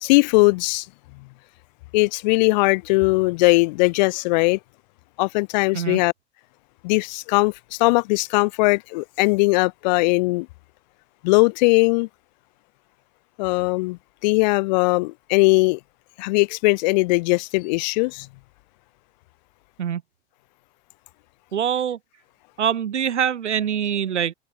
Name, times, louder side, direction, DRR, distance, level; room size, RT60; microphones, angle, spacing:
voice 1, 0.0-0.9 1.9-4.6 5.2-6.1 6.8-10.5 11.2-12.1 13.4-15.8 16.2-18.3, left 25 dB, 40° left, 0.4 m, -20 dB
voice 2, 21.5-22.0 22.6-24.3, right 9 dB, 90° right, 0.5 m, -24 dB
figure-of-eight pair, 85°, 34 cm